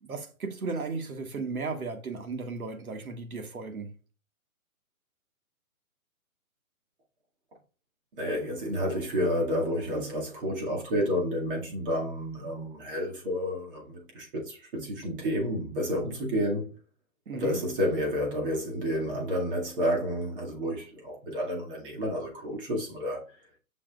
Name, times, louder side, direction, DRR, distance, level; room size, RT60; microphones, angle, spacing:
voice 1, 0.0-3.9 17.3-17.6, right 4 dB, 90° right, 1.6 m, -35 dB
voice 2, 8.2-16.7 17.3-23.2, equal, 40° right, 2.1 m, -30 dB
7.7 x 6.2 x 2.4 m
hypercardioid pair, 160°, 42 cm